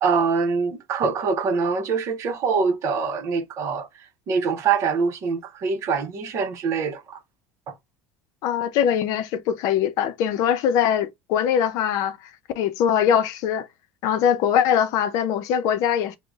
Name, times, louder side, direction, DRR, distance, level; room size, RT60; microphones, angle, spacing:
voice 1, 0.0-7.2 7.7-7.8, right 5 dB, 45° right, 0.9 m, -24 dB
voice 2, 8.4-12.3 12.6-13.7 14.0-16.2, left 9 dB, 60° left, 0.6 m, -22 dB
3.7 x 2.2 x 3.5 m
supercardioid pair, 115°, 7 cm